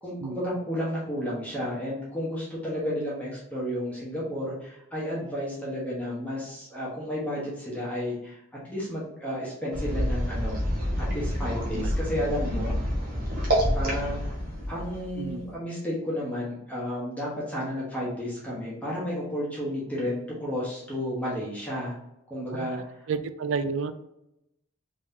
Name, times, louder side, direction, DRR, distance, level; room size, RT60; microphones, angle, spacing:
voice 1, 0.0-10.6 11.1-12.7 13.7-14.3 14.7-21.9 22.3-23.1, equal, 5° left, -7 dB, 1.0 m, -32 dB
sound 1, 9.7-15.5, equal, 45° right, 1.2 m, -28 dB
voice 2, 23.1-23.9, right 5 dB, 65° right, 10 dB, 0.3 m, -31 dB
3.6 x 3.1 x 2.7 m, 0.84 s
head